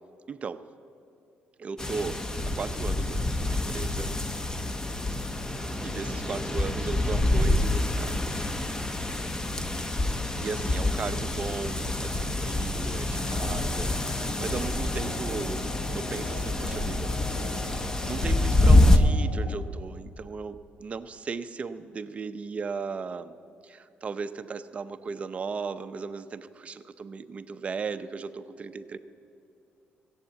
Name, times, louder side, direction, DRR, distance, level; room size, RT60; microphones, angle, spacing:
voice 1, 0.3-0.6 1.6-2.2 2.5-4.1 5.5-8.3 10.4-17.1 17.4-23.3 23.6-29.0, right 5 dB, 35° right, 10 dB, 0.6 m, -36 dB
sound 1, 1.8-19.0, left 1 dB, 15° left, 0.8 m, -26 dB
sound 2, 13.2-19.6, left 3 dB, 70° left, 1.4 m, -41 dB
15.5 x 8.0 x 8.1 m, 2.5 s
cardioid pair, 115°, 4 cm